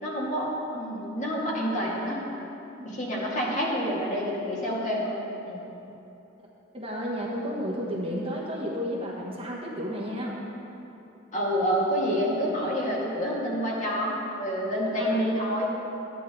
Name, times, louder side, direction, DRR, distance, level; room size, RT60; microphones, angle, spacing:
voice 1, 0.0-2.2 2.8-5.6 11.3-15.7, equal, 40° left, -5 dB, 2.3 m, -28 dB
voice 2, 2.8-3.1 6.7-10.4 14.8-15.4, equal, 30° right, -3 dB, 1.3 m, -32 dB
13.0 x 9.8 x 3.8 m, 2.9 s
head